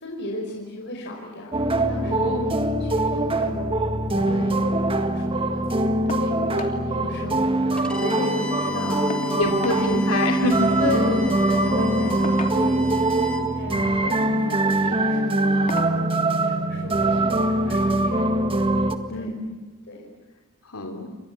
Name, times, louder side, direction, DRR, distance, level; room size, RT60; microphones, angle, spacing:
voice 1, 0.0-5.6 6.1-10.0 10.8-18.3 19.1-19.4 19.9-20.1, left 2 dB, 55° left, -1 dB, 5.4 m, -34 dB
sound 1, 1.5-18.9, right 2 dB, 25° right, 1.8 m, -23 dB
voice 2, 2.0-2.5 7.8-8.2 9.4-10.7 19.1-19.5 20.6-21.1, left 3 dB, 80° left, 3 dB, 3.0 m, -27 dB
sound 2, 6.1-6.3 6.6-6.8 7.2-7.3 7.5-8.2 9.1-9.8 11.1-11.3 12.2-12.9 13.9-14.2 14.7-14.9 15.7-16.0 17.3-17.4 17.9-18.0, left 3 dB, 35° left, 2.9 m, -36 dB
Bowed string instrument, 7.8-13.4, left 2 dB, 5° left, 3.6 m, -36 dB
30.0 x 25.0 x 7.4 m, 1.3 s
head